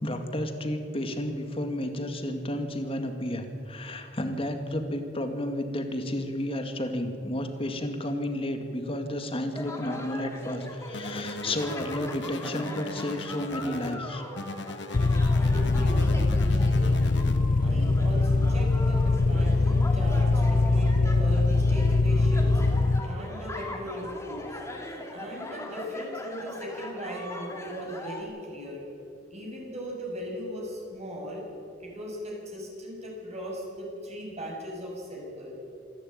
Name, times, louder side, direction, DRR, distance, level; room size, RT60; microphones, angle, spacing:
voice 1, 0.0-14.2, left 1 dB, 30° left, 6 dB, 2.2 m, -32 dB
sound 1, 9.5-28.2, left 1 dB, 15° left, 2.6 m, -40 dB
sound 2, 10.9-13.9 14.4-17.4, left 2 dB, 70° left, 1.2 m, -39 dB
sound 3, 14.9-23.0, left 3 dB, 50° left, 0.6 m, -22 dB
voice 2, 15.3-17.0 17.6-22.6 23.0-24.6 25.1-28.8 29.3-31.4 31.8-35.5, equal, 35° right, -1 dB, 6.5 m, -38 dB
27.0 x 12.0 x 8.9 m, 2.6 s
head